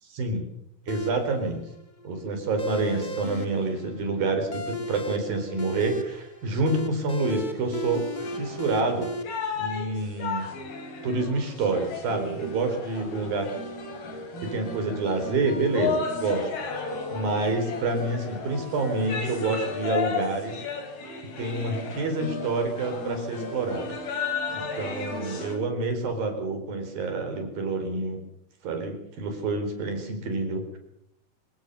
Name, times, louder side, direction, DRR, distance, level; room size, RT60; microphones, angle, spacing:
voice 1, 0.1-0.4 0.9-1.6 2.0-8.0 8.3-9.1 9.6-10.4 11.0-13.5 14.4-16.8 17.1-20.6 21.4-24.0 24.5-28.2 28.6-30.8, right 3 dB, 70° right, 6 dB, 6.0 m, -28 dB
sound 1, 0.9-9.2, equal, 35° left, 0.7 m, -36 dB
sound 2, 8.2-25.6, left 4 dB, 85° left, 5.8 m, -34 dB
26.5 x 16.5 x 7.0 m, 0.80 s
omnidirectional pair, 4.3 m